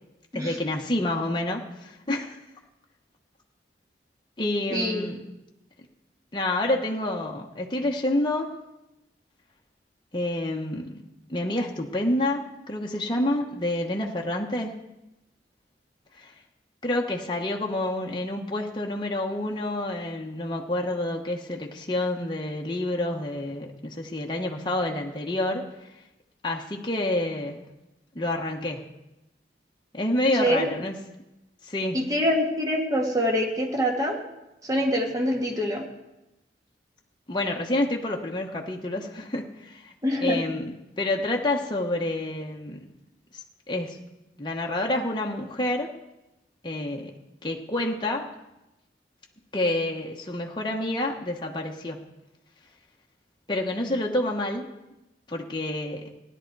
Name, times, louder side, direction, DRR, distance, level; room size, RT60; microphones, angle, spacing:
voice 1, 0.3-2.4 4.4-5.2 6.3-8.5 10.1-11.0 11.3-14.7 16.1-16.3 16.8-25.9 26.4-27.7 28.1-28.9 29.9-31.0 31.6-32.0 37.3-39.9 40.2-42.9 43.3-44.0 44.4-45.9 46.6-47.1 47.4-48.3 49.5-52.0 53.5-54.6 55.3-56.1, left 1 dB, 25° left, 0 dB, 1.0 m, -28 dB
voice 2, 4.7-5.1 30.3-30.7 31.9-34.2 34.6-35.8 40.0-40.4, equal, 20° right, 0 dB, 1.8 m, -25 dB
16.5 x 11.0 x 4.6 m, 0.95 s
head